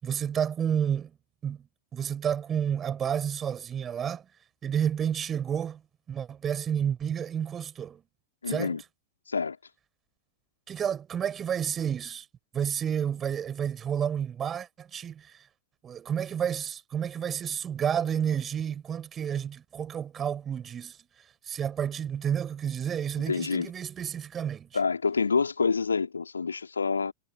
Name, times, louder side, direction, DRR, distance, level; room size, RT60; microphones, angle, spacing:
voice 1, 0.0-1.1 1.4-1.6 1.9-4.2 4.6-5.8 6.1-8.0 8.5-8.7 10.7-12.3 12.5-15.3 15.8-21.0 21.5-24.7, right 8 dB, 25° right, 6.8 m, -30 dB
voice 2, 8.4-8.8 9.3-9.6 23.3-23.7 24.7-27.1, left 5 dB, 75° left, 3.3 m, -27 dB
figure-of-eight pair, 90°, 0 cm